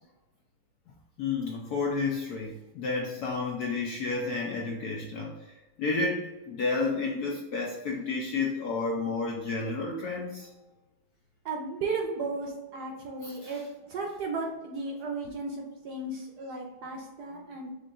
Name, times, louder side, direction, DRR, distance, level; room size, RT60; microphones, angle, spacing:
voice 1, 1.2-10.5 13.2-13.5, left 3 dB, 70° left, -1 dB, 0.9 m, -31 dB
voice 2, 11.4-17.7, right 3 dB, 65° right, 0 dB, 1.0 m, -35 dB
5.1 x 2.5 x 3.6 m, 1.1 s
omnidirectional pair, 2.2 m